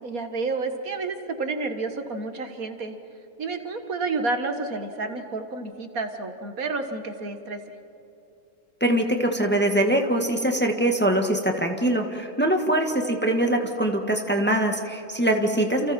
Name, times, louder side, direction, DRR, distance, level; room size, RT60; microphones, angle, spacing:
voice 1, 0.0-3.0 3.4-7.6 12.5-12.7, right 3 dB, 70° right, 7 dB, 2.0 m, -30 dB
voice 2, 8.8-15.9, right 1 dB, 5° left, 3 dB, 1.7 m, -23 dB
29.5 x 29.0 x 4.4 m, 2.9 s
omnidirectional pair, 1.6 m